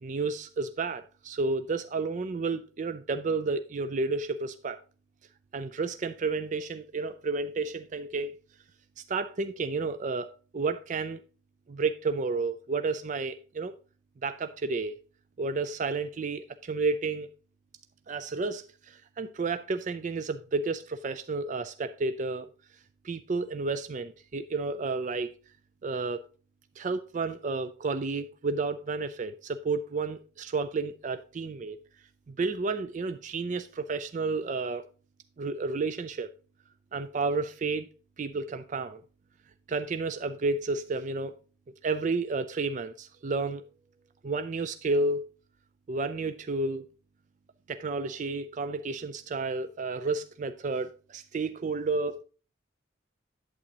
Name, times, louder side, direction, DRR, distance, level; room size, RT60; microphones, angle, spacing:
voice 1, 0.0-4.8 5.5-8.4 9.0-11.2 11.7-13.7 14.2-15.0 15.4-17.3 18.1-22.5 23.0-25.3 25.8-26.2 26.8-31.8 32.3-34.8 35.4-36.3 36.9-37.9 38.2-39.0 39.7-41.3 41.8-43.6 44.2-45.3 45.9-46.8 47.7-52.2, right 3 dB, 40° right, 0.3 m, -31 dB
8.6 x 7.9 x 2.9 m
head